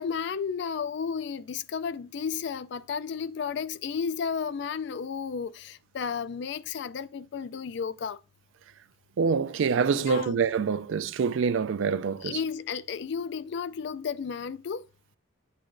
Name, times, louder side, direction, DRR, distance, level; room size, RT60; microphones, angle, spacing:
voice 1, 0.0-8.2 10.0-10.4 12.2-14.8, left 6 dB, 60° left, 0.3 m, -33 dB
voice 2, 9.2-12.4, right 5 dB, 75° right, 0.4 m, -26 dB
8.1 x 5.6 x 2.6 m
head